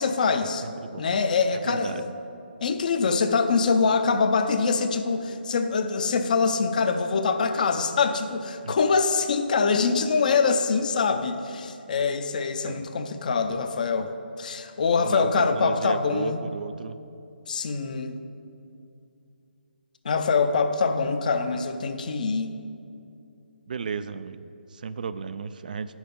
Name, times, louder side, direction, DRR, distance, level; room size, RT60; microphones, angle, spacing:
voice 1, 0.0-0.6 1.0-2.0 2.6-14.1 14.4-16.4 17.5-18.2 20.0-22.6, left 5 dB, 50° left, 8 dB, 0.6 m, -24 dB
voice 2, 0.6-1.0 1.6-2.0 8.6-8.8 12.6-12.9 15.0-17.0 23.7-26.0, right 5 dB, 50° right, 13 dB, 0.3 m, -34 dB
8.3 x 6.2 x 5.3 m, 2.6 s
figure-of-eight pair, 145°, 6 cm